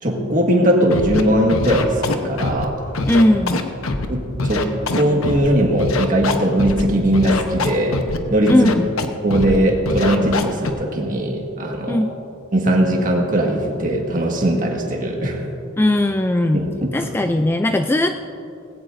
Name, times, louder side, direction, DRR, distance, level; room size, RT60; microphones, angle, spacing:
voice 1, 0.0-2.8 4.1-4.7 4.9-8.0 8.3-8.7 9.2-12.0 12.5-15.5 16.5-17.1, right 1 dB, 40° right, 1 dB, 1.8 m, -19 dB
Scratching (performance technique), 0.9-1.2 1.5-2.6 2.9-4.1 4.4-5.5 5.8-6.8 7.1-8.2 8.5-9.1 9.3-9.6 9.9-10.7, left 3 dB, 80° left, 1.0 m, -23 dB
voice 2, 3.1-3.6 8.5-8.9 11.9-12.1 15.8-16.7 16.9-18.2, left 1 dB, 10° left, 7 dB, 0.3 m, -18 dB
18.5 x 16.5 x 2.6 m, 2.8 s
head